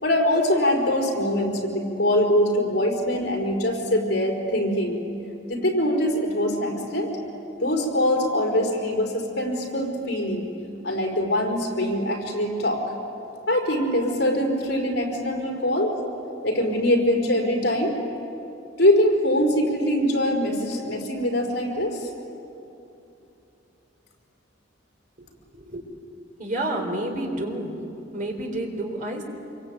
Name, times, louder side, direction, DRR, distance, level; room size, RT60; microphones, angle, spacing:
voice 1, 0.0-5.0 5.5-7.1 7.6-10.4 10.8-12.8 13.5-16.0 16.4-18.0 18.8-22.1, left 1 dB, 60° left, 0 dB, 4.9 m, -23 dB
voice 2, 25.5-25.9 26.4-27.7 28.1-29.2, right 1 dB, 45° right, 2 dB, 3.9 m, -29 dB
27.0 x 23.5 x 9.0 m, 2.8 s
head